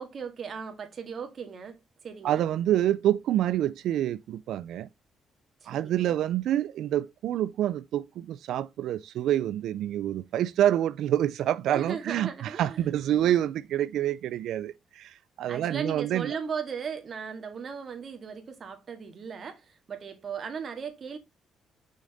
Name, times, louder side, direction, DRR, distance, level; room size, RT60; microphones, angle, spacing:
voice 1, 0.0-2.4 5.6-6.2 11.7-12.9 15.5-21.2, right 6 dB, 50° right, 1.9 m, -37 dB
voice 2, 2.2-4.9 5.7-16.4, right 12 dB, 80° right, 0.4 m, -27 dB
6.3 x 5.2 x 4.0 m
cardioid pair, 90°, 0 cm